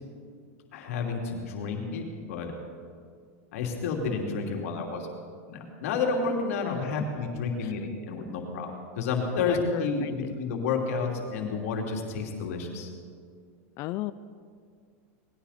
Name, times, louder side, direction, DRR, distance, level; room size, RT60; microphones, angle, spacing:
voice 1, 0.7-2.0 2.3-2.5 3.5-5.1 5.5-12.9, left 4 dB, 75° left, 1 dB, 2.9 m, -30 dB
voice 2, 9.4-10.4 13.8-14.1, left 16 dB, 40° left, 15 dB, 0.4 m, -34 dB
20.0 x 16.0 x 4.3 m, 2.1 s
supercardioid pair, 145°, 8 cm